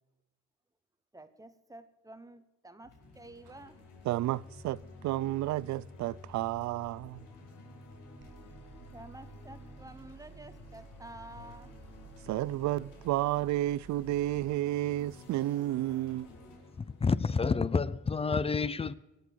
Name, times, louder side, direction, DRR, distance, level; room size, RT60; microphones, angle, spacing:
voice 1, 1.1-3.8 8.9-11.8, right 2 dB, 10° right, 1.0 m, -50 dB
sound 1, 2.8-18.2, left 2 dB, 85° left, 4.6 m, -52 dB
voice 2, 4.0-7.3 12.3-16.3, right 15 dB, 65° right, 0.5 m, -31 dB
sound 2, 8.2-14.6, right 7 dB, 40° right, 0.8 m, -54 dB
voice 3, 16.8-18.9, left 4 dB, 20° left, 0.5 m, -29 dB
25.0 x 8.4 x 4.7 m
cardioid pair, 130°, 31 cm